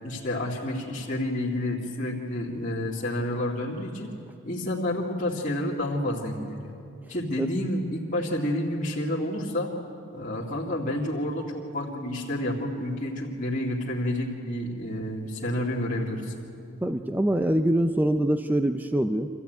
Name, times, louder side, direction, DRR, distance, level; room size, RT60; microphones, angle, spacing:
voice 1, 0.0-4.1 4.4-6.7 7.1-9.7 10.1-16.3, left 1 dB, 35° left, -6 dB, 2.3 m, -29 dB
voice 2, 16.8-19.3, right 1 dB, 10° right, 8 dB, 0.5 m, -24 dB
25.5 x 14.5 x 9.2 m, 2.6 s
head